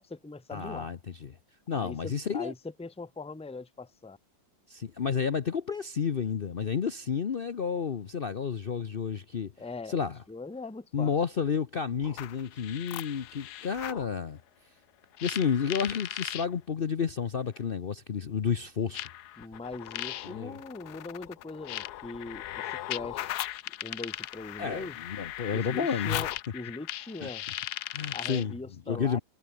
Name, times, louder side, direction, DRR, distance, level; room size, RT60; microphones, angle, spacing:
voice 1, 0.0-0.9 1.7-4.2 9.6-11.1 19.4-23.5 23.8-25.0 25.5-27.4 28.1-29.2, left 3 dB, 5° left, 0.4 m, -41 dB
voice 2, 0.5-1.4 1.7-2.5 4.7-9.5 9.9-10.2 10.9-14.4 15.2-19.1 20.2-20.6 24.6-26.3 27.2-27.3 27.9-28.5 28.9-29.2, left 6 dB, 85° left, 0.5 m, -31 dB
sound 1, 12.0-14.1 15.2-16.5 17.6-17.7 18.9-28.5, left 13 dB, 65° left, 1.0 m, -38 dB
omnidirectional pair, 2.2 m